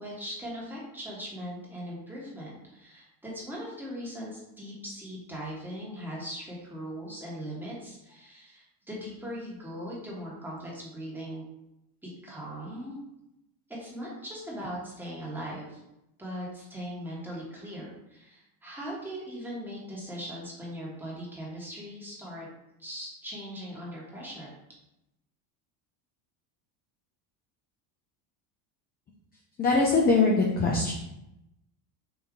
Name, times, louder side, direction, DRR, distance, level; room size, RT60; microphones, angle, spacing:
voice 1, 0.0-11.4 12.2-13.0 13.7-15.8 16.2-22.5 22.8-24.5, equal, 5° right, -6 dB, 1.3 m, -39 dB
voice 2, 29.6-30.9, left 3 dB, 20° left, -1 dB, 0.4 m, -22 dB
4.7 x 2.6 x 3.7 m, 0.88 s
cardioid pair, 135°, 46 cm